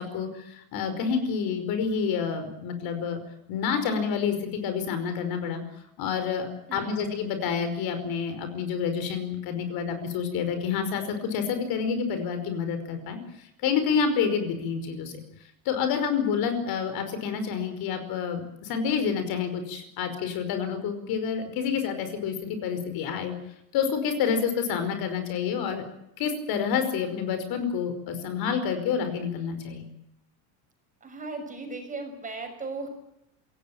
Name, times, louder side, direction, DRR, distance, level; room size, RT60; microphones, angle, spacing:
voice 1, 0.0-3.2 3.5-5.6 6.0-15.2 15.6-23.3 23.7-25.8 26.2-29.8, left 6 dB, 50° left, 9 dB, 5.2 m, -28 dB
voice 2, 31.0-32.9, right 3 dB, 15° right, 4 dB, 6.3 m, -36 dB
27.0 x 18.0 x 9.0 m, 0.81 s
cardioid pair, 160°, 45 cm